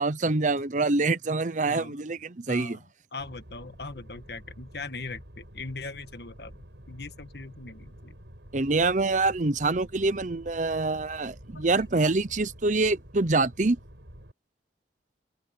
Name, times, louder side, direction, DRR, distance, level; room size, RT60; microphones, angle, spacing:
voice 1, 0.0-2.8 8.5-13.8, right 3 dB, 45° right, 0.8 m, -25 dB
voice 2, 1.7-2.0 2.5-2.9 3.1-8.2 11.5-12.1, left 3 dB, 65° left, 1.6 m, -40 dB
sound 1, 3.2-14.3, equal, 85° right, 6.7 m, -48 dB
open air
head